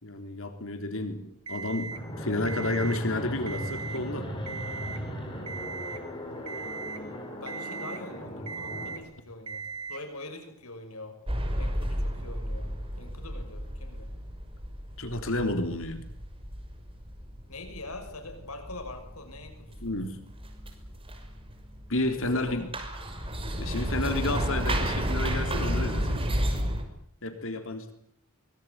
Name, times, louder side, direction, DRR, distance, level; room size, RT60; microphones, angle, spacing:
voice 1, 0.0-4.3 15.0-16.1 19.8-20.2 21.9-22.6 23.6-26.4 27.2-27.9, left 2 dB, 65° left, 7 dB, 3.7 m, -31 dB
Alarm, 1.5-2.0 2.5-3.0 3.4-4.0 4.5-5.0 5.5-6.0 6.5-7.0 7.5-8.0 8.5-9.0 9.5-10.0, right 5 dB, 80° right, 3.2 m, -38 dB
Fixed-wing aircraft airplane, 1.9-9.0, equal, 25° left, 7.6 m, -38 dB
voice 2, 6.8-9.6 9.9-11.2 11.6-14.1 17.5-19.9 22.1-22.7, left 2 dB, 85° left, 6 dB, 6.1 m, -44 dB
sound 1, 11.3-26.8, equal, 25° right, 5.9 m, -32 dB
24.0 x 22.0 x 9.6 m, 0.67 s
head